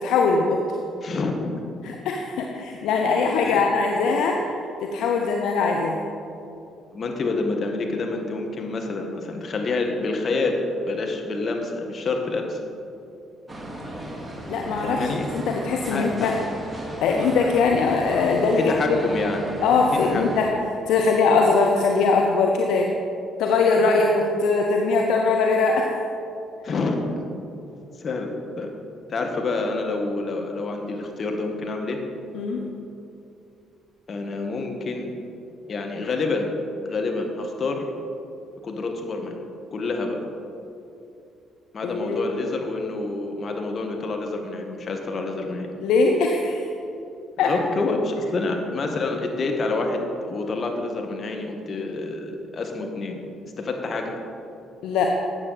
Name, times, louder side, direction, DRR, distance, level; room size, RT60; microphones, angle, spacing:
voice 1, 0.0-0.6 1.8-4.4 4.8-6.0 14.5-16.4 17.0-19.1 19.6-20.5 20.9-22.9 23.4-25.9 32.3-32.6 41.8-42.2 45.8-46.6 47.4-47.5 54.8-55.1, left 4 dB, 65° left, 1 dB, 0.7 m, -21 dB
voice 2, 1.0-1.6 3.4-3.6 6.9-10.6 10.9-12.6 14.8-15.3 15.9-16.3 18.6-19.5 20.0-20.2 23.8-24.0 26.6-27.2 28.0-28.7 29.1-32.0 34.1-35.1 35.7-36.5 36.8-37.8 38.6-39.4 39.7-40.2 41.7-45.7 47.4-53.2 53.6-54.1, left 3 dB, 45° left, 2 dB, 1.7 m, -27 dB
sound 1, 13.5-20.5, equal, 15° right, 2.5 m, -34 dB
13.0 x 8.6 x 4.2 m, 2.7 s
hypercardioid pair, 45°, 0 cm